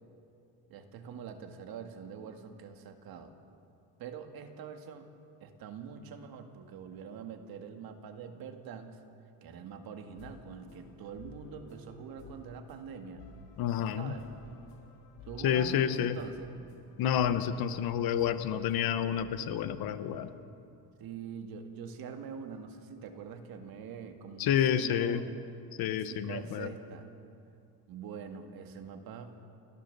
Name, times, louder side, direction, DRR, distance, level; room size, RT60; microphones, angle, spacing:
voice 1, 0.7-3.4 4.0-5.1 5.4-9.0 9.4-13.2 14.0-14.3 15.2-16.5 21.0-25.3 25.9-27.1 27.9-29.4, right 6 dB, 60° right, 6 dB, 2.0 m, -44 dB
sound 1, 10.0-19.6, left 3 dB, 75° left, 4.3 m, -54 dB
voice 2, 13.6-14.1 15.4-16.2 17.0-20.3 24.4-25.2 25.8-26.7, left 9 dB, 60° left, 11 dB, 1.2 m, -29 dB
29.0 x 13.5 x 6.9 m, 2.6 s
cardioid pair, 140°, 41 cm